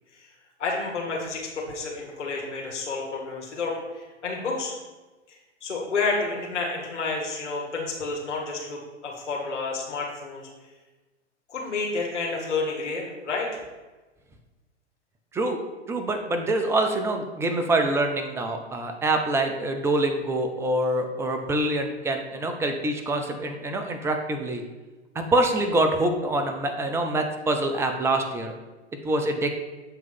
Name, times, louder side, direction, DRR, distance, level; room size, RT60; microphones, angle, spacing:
voice 1, 0.6-4.8 5.3-10.5 11.5-13.6, left 3 dB, 80° left, -2 dB, 1.6 m, -30 dB
voice 2, 15.9-24.6 25.1-28.5 29.0-29.5, right 2 dB, 10° right, 5 dB, 0.4 m, -25 dB
7.7 x 3.1 x 5.5 m, 1.2 s
hypercardioid pair, 110°, 35 cm